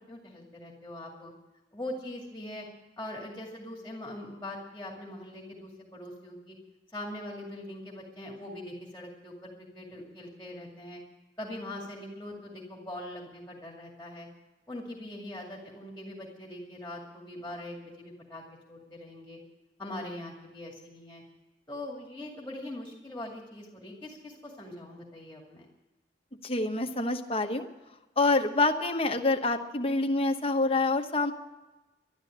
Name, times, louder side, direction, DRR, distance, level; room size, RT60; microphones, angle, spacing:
voice 1, 0.1-1.3 1.7-2.7 3.0-6.5 6.9-11.0 11.4-14.3 14.7-19.4 19.8-21.2 21.7-25.7, left 1 dB, 10° left, -1 dB, 2.3 m, -42 dB
voice 2, 26.4-27.7 28.2-31.3, left 2 dB, 30° left, 4 dB, 1.1 m, -26 dB
12.0 x 11.5 x 8.6 m, 1.1 s
head